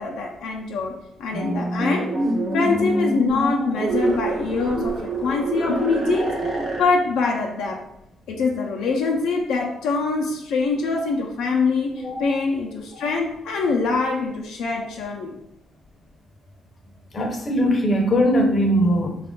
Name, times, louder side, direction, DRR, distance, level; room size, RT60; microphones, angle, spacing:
voice 1, 0.0-2.1 2.5-6.3 6.8-7.8 8.3-15.3, left 4 dB, 80° left, 0 dB, 0.6 m, -24 dB
sound 1, 1.3-6.8, right 2 dB, 50° right, 1.0 m, -26 dB
voice 2, 17.1-19.2, equal, 35° left, 2 dB, 0.7 m, -20 dB
3.4 x 2.4 x 3.7 m, 0.82 s
cardioid pair, 90°, 0 cm